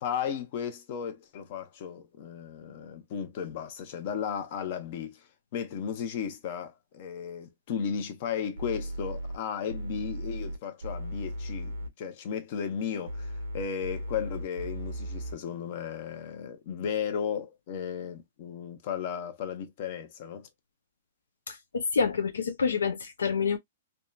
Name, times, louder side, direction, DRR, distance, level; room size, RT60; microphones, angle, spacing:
voice 1, 0.0-5.3 5.5-11.7 12.0-20.5, left 7 dB, 50° left, 0.8 m, -35 dB
sound 1, 8.6-9.4 9.7-11.9 13.1-15.4, equal, 90° right, 0.6 m, -36 dB
voice 2, 21.5-23.6, left 5 dB, 90° left, 0.5 m, -28 dB
2.7 x 2.3 x 2.3 m
hypercardioid pair, 135°, 0 cm